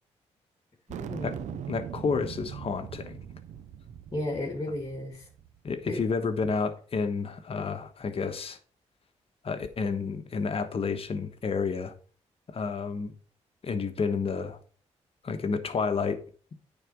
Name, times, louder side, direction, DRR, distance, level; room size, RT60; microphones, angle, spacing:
voice 1, 0.9-1.6 4.1-5.3 5.9-6.0, left 1 dB, 30° left, 2.4 m, -34 dB
sound 1, 0.9-5.6, right 9 dB, 85° right, 0.6 m, -41 dB
voice 2, 1.7-3.2 5.6-8.6 9.4-11.9 12.5-13.1 13.6-14.6 15.2-16.2, left 5 dB, 55° left, 1.2 m, -30 dB
sound 2, 1.9-5.5, right 7 dB, 50° right, 2.1 m, -54 dB
9.2 x 4.1 x 5.9 m
cardioid pair, 75°, 12 cm